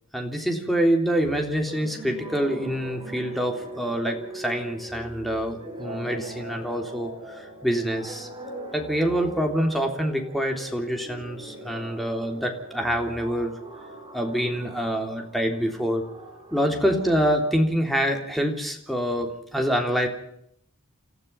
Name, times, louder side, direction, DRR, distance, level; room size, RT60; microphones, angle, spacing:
voice 1, 0.1-8.3 8.7-13.5 14.1-16.0 16.5-20.1, equal, ahead, 3 dB, 3.5 m, -26 dB
sound 1, 1.6-18.0, right 1 dB, 25° right, 4.8 m, -41 dB
29.5 x 15.0 x 5.8 m, 0.72 s
head